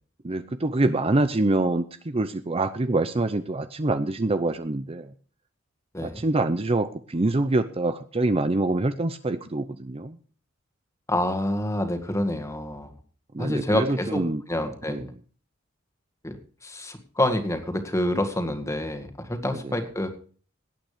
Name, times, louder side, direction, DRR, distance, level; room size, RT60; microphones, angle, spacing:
voice 1, 0.2-5.1 6.0-10.2 13.3-14.4 14.9-15.1 19.6-19.7, right 2 dB, 30° right, 11 dB, 0.7 m, -25 dB
voice 2, 11.1-12.9 13.4-15.0 16.2-16.4 16.6-20.1, left 1 dB, 15° left, 7 dB, 2.0 m, -27 dB
18.0 x 9.0 x 5.1 m, 0.42 s
head